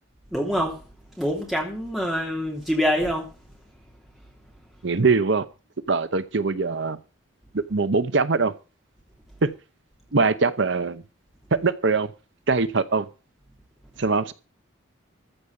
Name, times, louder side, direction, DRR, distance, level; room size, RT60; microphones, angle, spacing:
voice 1, 0.3-0.8 1.2-3.3, equal, ahead, 2.9 m, -25 dB
voice 2, 4.8-5.5 5.9-7.0 7.5-8.5 9.4-9.5 10.1-11.0 11.6-12.1 12.5-13.1 14.0-14.3, right 4 dB, 60° right, 0.7 m, -22 dB
14.0 x 4.9 x 8.1 m
head